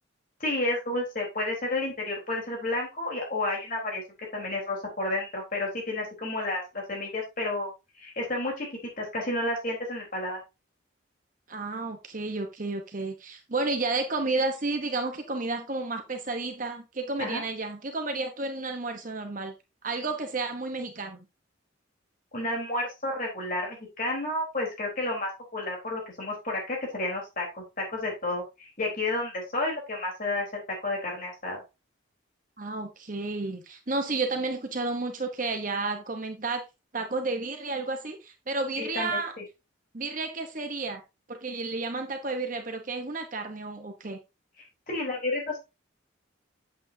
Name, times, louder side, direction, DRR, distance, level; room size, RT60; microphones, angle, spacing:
voice 1, 0.4-4.0 4.3-7.7 8.0-8.7 9.0-10.4 17.2-17.4 22.3-31.6 38.8-39.2 44.9-45.6, left 2 dB, 40° left, -1 dB, 3.8 m, -31 dB
voice 2, 11.5-19.5 19.8-21.2 32.6-36.6 36.9-39.3 39.9-41.0 41.3-44.2, right 3 dB, 40° right, 5 dB, 1.0 m, -31 dB
8.7 x 8.1 x 2.7 m, 0.25 s
head